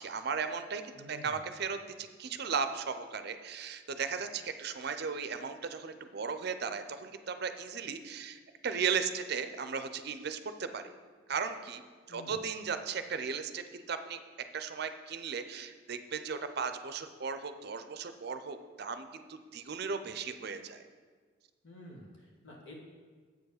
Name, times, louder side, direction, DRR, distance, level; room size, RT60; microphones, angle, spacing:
voice 1, 0.0-10.8 11.3-11.8 12.1-14.2 14.5-20.8, right 6 dB, 55° right, 9 dB, 0.5 m, -36 dB
voice 2, 0.9-1.5 12.1-12.4 21.6-22.7, left 1 dB, 75° left, -3 dB, 1.8 m, -50 dB
8.1 x 4.7 x 6.4 m, 1.5 s
head